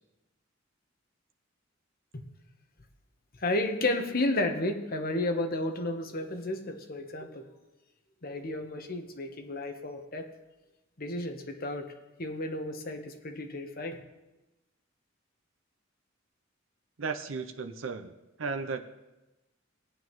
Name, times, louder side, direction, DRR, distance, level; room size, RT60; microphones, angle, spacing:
voice 1, 3.4-7.5 8.2-10.3 11.0-11.9 12.2-14.0, left 2 dB, 50° left, 4 dB, 1.1 m, -32 dB
voice 2, 17.0-18.1 18.4-18.8, right 4 dB, 75° right, 6 dB, 0.6 m, -34 dB
17.5 x 9.2 x 3.1 m, 1.0 s
head